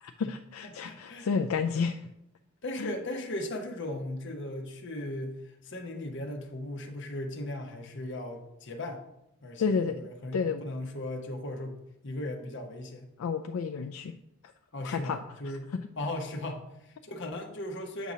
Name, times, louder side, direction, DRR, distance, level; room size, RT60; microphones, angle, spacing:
voice 1, 0.0-2.0 2.8-2.9 9.6-10.0 10.3-10.6 13.2-14.1 14.8-15.2, left 5 dB, 85° left, 6 dB, 0.4 m, -30 dB
voice 2, 0.6-1.3 2.6-9.0 9.4-13.1 14.7-18.1, left 1 dB, 60° left, 3 dB, 1.0 m, -37 dB
8.1 x 2.8 x 6.1 m, 0.83 s
head